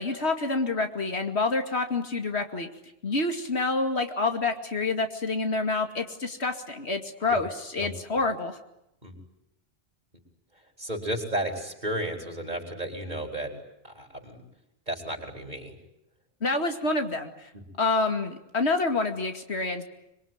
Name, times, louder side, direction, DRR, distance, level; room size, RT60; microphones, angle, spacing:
voice 1, 0.0-2.7 3.0-7.5 7.7-8.6 16.4-17.3 17.8-19.8, left 3 dB, 85° left, 5 dB, 2.7 m, -27 dB
voice 2, 7.8-8.2 9.0-9.2 10.8-13.5 13.8-14.4 14.9-15.8 17.5-17.6, right 1 dB, 45° right, 3 dB, 5.0 m, -33 dB
25.0 x 23.0 x 9.4 m, 0.84 s
omnidirectional pair, 1.1 m